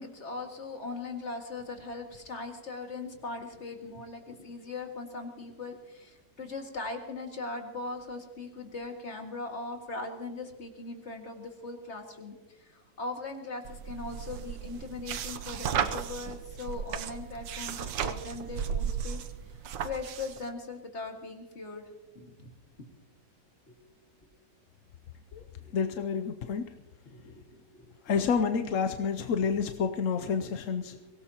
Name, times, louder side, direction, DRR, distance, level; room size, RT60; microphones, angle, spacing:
voice 1, 0.0-19.2 19.8-21.8 22.1-22.5 23.7-23.8 25.6-25.9 27.1-27.9 30.9-31.0, left 3 dB, 40° left, 2 dB, 2.2 m, -40 dB
sound 1, 13.7-20.5, right 8 dB, 90° right, 1.5 m, -35 dB
voice 2, 25.7-26.7 28.0-31.0, left 6 dB, 60° left, 7 dB, 0.8 m, -29 dB
23.5 x 17.5 x 2.9 m, 1.2 s
omnidirectional pair, 1.9 m